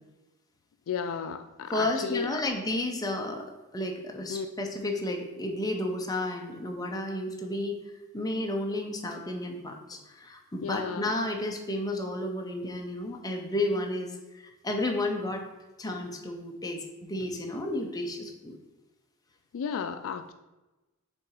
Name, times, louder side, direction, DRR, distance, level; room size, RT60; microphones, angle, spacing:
voice 1, 0.9-2.4 4.3-4.5 10.6-11.1 19.5-20.3, left 6 dB, 65° left, 8 dB, 0.3 m, -33 dB
voice 2, 1.7-3.4 3.7-7.8 8.1-14.1 14.6-15.4 15.8-18.6, left 1 dB, 15° left, 2 dB, 0.7 m, -32 dB
5.9 x 3.8 x 4.7 m, 1.1 s
head